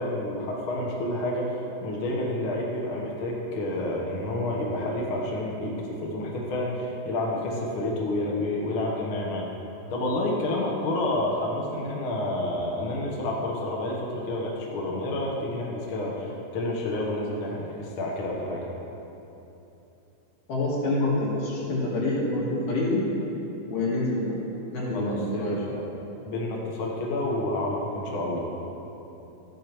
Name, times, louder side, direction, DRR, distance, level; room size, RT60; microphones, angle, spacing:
voice 1, 0.0-1.5 1.8-9.5 9.9-18.6 21.0-21.2 24.9-25.8 26.2-28.5, left 1 dB, 55° left, -2 dB, 1.7 m, -29 dB
voice 2, 20.5-23.0 23.7-24.3 24.7-25.6, left 2 dB, 80° left, -7 dB, 3.9 m, -26 dB
13.5 x 9.9 x 3.1 m, 3.0 s
omnidirectional pair, 3.5 m